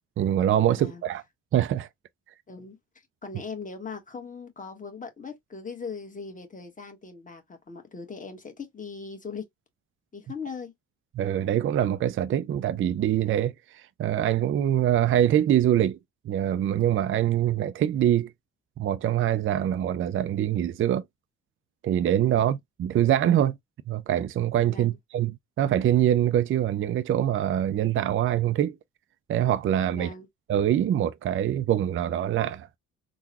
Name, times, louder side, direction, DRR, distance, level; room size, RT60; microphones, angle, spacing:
voice 1, 0.2-1.2 1.5-1.9 11.2-16.0 16.3-18.3 18.8-21.0 21.8-23.6 23.9-25.3 25.6-28.8 29.3-30.1 30.5-32.8, right 11 dB, 45° right, 0.4 m, -24 dB
voice 2, 3.2-9.4 10.1-10.7 22.3-22.5 24.7-25.0 29.9-30.3, left 5 dB, 25° left, 1.3 m, -39 dB
3.8 x 2.2 x 2.9 m
cardioid pair, 90°, 30 cm